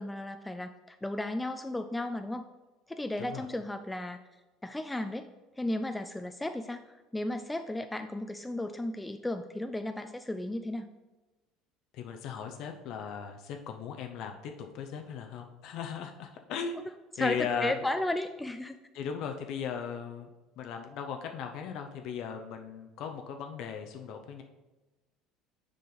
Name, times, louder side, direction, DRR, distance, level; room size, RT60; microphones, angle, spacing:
voice 1, 0.0-2.5 2.9-4.2 4.6-6.9 7.1-10.9 17.2-18.8, left 1 dB, 10° left, 7 dB, 0.4 m, -34 dB
voice 2, 11.9-16.8 17.2-17.7 18.9-20.3 20.6-24.4, left 7 dB, 60° left, 4 dB, 0.6 m, -37 dB
6.7 x 5.0 x 3.9 m, 1.1 s
hypercardioid pair, 70°, 0 cm